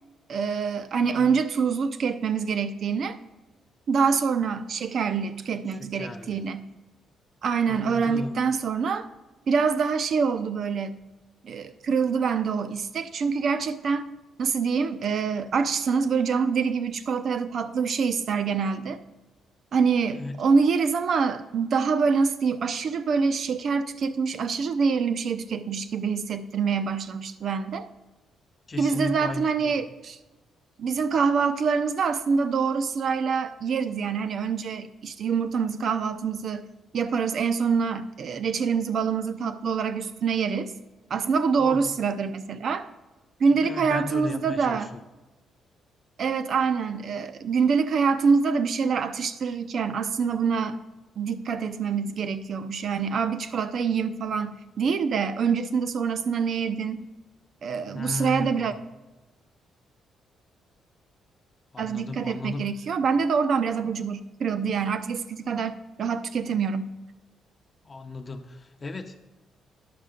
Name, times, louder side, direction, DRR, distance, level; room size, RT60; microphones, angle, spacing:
voice 1, 0.3-3.2 3.9-6.7 7.4-9.1 9.5-11.0 11.4-14.1 14.4-19.0 19.7-27.9 28.8-30.2 30.8-36.6 36.9-40.7 41.1-42.9 43.4-44.9 46.2-50.8 51.2-57.0 57.6-58.7 61.8-66.9, right 5 dB, 50° right, 12 dB, 0.7 m, -25 dB
voice 2, 5.7-6.4 7.7-8.4 20.1-20.4 28.7-29.7 41.6-41.9 43.6-45.0 57.9-58.7 61.7-62.7 67.8-69.2, left 3 dB, 25° left, 5 dB, 0.7 m, -35 dB
10.5 x 6.5 x 5.1 m, 1.1 s
cardioid pair, 135°, 0 cm